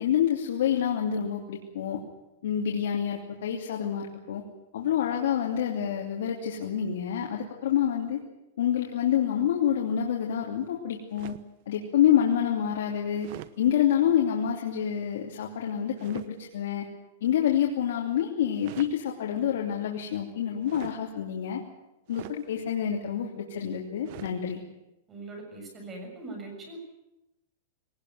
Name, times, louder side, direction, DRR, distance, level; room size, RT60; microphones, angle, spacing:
voice 1, 0.0-2.0 2.4-4.4 4.7-8.2 8.6-11.3 11.7-13.3 13.6-16.9 17.2-21.6 22.1-24.6, left 9 dB, 75° left, 0 dB, 2.9 m, -27 dB
sound 1, 11.1-11.6 13.2-13.6 16.0-16.3 18.5-19.0 20.6-21.0 22.1-22.4 24.0-24.4, right 15 dB, 45° right, 1.0 m, -43 dB
voice 2, 25.1-26.8, right 2 dB, 15° right, 2 dB, 6.8 m, -41 dB
20.5 x 19.0 x 9.4 m, 0.93 s
supercardioid pair, 165°, 0 cm